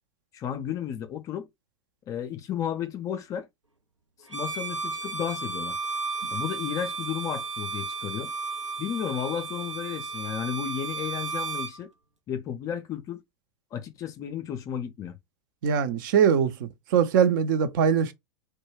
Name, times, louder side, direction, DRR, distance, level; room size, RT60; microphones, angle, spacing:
voice 1, 0.3-1.5 2.1-3.5 4.3-5.8 6.3-8.3 8.8-11.9 12.3-13.2 13.7-15.2, left 9 dB, 20° left, 0.4 m, -33 dB
Bowed string instrument, 4.3-11.8, right 3 dB, 90° right, 0.6 m, -33 dB
voice 2, 15.6-18.1, right 7 dB, 45° right, 0.5 m, -22 dB
2.2 x 2.1 x 3.2 m
figure-of-eight pair, 95°, 15 cm